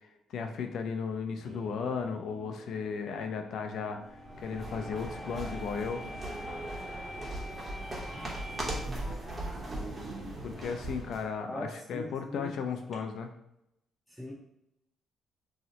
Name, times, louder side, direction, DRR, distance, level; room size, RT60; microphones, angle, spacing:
voice 1, 0.3-4.0 4.4-6.0 10.4-13.3, left 6 dB, 75° left, 6 dB, 0.4 m, -35 dB
sound 1, 1.3-10.4, equal, 65° right, 1.1 m, -46 dB
sound 2, 4.1-11.3, right 1 dB, 30° right, 0.9 m, -39 dB
voice 2, 11.5-12.6 12.9-13.0 14.1-14.3, left 1 dB, 5° left, -4 dB, 0.6 m, -41 dB
2.8 x 2.0 x 3.8 m, 0.85 s
cardioid pair, 90°, 0 cm